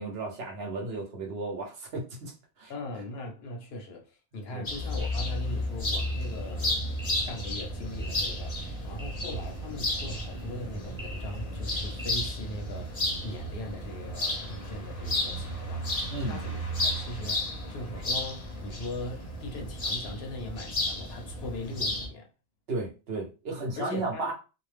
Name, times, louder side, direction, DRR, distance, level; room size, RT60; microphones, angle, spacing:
voice 1, 0.0-2.7 4.5-4.7 16.1-16.4 22.7-24.3, right 2 dB, 65° right, 1.0 m, -34 dB
voice 2, 2.7-22.3 23.8-24.3, left 2 dB, 65° left, 0.9 m, -40 dB
sound 1, 4.6-22.1, left 1 dB, 35° left, 0.7 m, -33 dB
sound 2, 5.0-12.1, equal, 15° right, 0.8 m, -46 dB
2.6 x 2.1 x 3.2 m
omnidirectional pair, 1.2 m